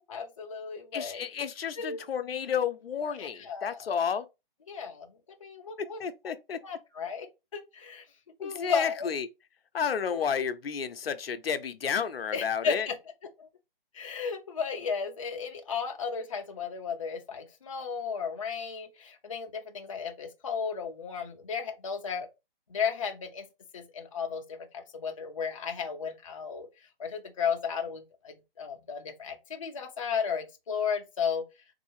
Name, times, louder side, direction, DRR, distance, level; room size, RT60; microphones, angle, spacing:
voice 1, 0.1-1.2 1.8-2.0 3.2-3.9 4.7-5.1 5.4-6.0 6.6-7.3 7.5-8.0 8.4-9.1 10.1-10.2 12.3-13.0 13.4-13.5 13.9-22.3 22.7-23.4 23.7-26.7 27.0-31.4, left 6 dB, 35° left, 0.5 m, -34 dB
voice 2, 0.9-4.2 5.8-6.6 8.4-9.3 9.7-12.9, left 7 dB, 85° left, 0.6 m, -31 dB
3.9 x 2.7 x 3.1 m
hypercardioid pair, 170°, 29 cm